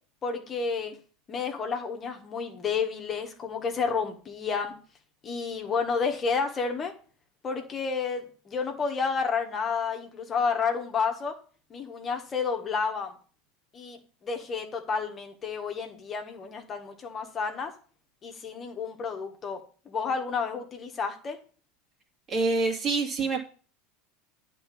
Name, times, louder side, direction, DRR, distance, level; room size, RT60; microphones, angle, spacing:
voice 1, 0.2-1.0 1.3-4.8 5.2-6.9 7.4-11.4 11.7-13.1 13.7-17.7 18.2-21.4, left 5 dB, 30° left, 4 dB, 1.5 m, -30 dB
voice 2, 22.3-23.4, right 3 dB, 35° right, 2 dB, 2.5 m, -26 dB
10.0 x 3.9 x 7.1 m, 0.40 s
figure-of-eight pair, 75°, 0 cm